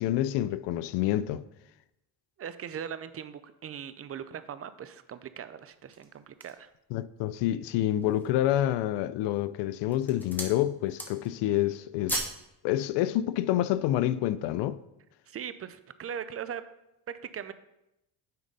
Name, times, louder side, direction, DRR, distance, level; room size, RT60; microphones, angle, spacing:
voice 1, 0.0-1.4 6.9-12.3 12.6-14.8, left 13 dB, 80° left, 0.5 m, -28 dB
voice 2, 2.4-6.7 15.3-16.6 17.1-17.5, right 8 dB, 35° right, 0.5 m, -40 dB
sound 1, 5.7-6.7 7.3-7.4 7.9-8.4 9.1-9.5 9.8-10.6 10.9-11.4 11.7-12.4 12.8-12.9, right 1 dB, 5° left, 1.3 m, -36 dB
9.4 x 4.0 x 5.3 m
cardioid pair, 105°, 41 cm